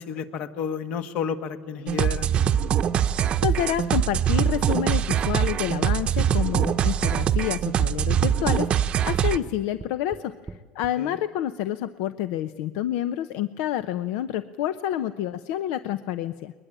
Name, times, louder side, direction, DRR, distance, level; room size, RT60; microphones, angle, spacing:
voice 1, 0.0-2.3 11.0-11.2, left 7 dB, 60° left, 9 dB, 1.5 m, -31 dB
sound 1, 1.9-9.4, right 9 dB, 40° right, 0.8 m, -23 dB
voice 2, 3.1-16.5, left 11 dB, 85° left, 12 dB, 0.7 m, -28 dB
sound 2, 9.1-11.0, right 3 dB, 15° right, 0.9 m, -41 dB
21.5 x 21.0 x 9.0 m, 1.4 s
cardioid pair, 130°, 3 cm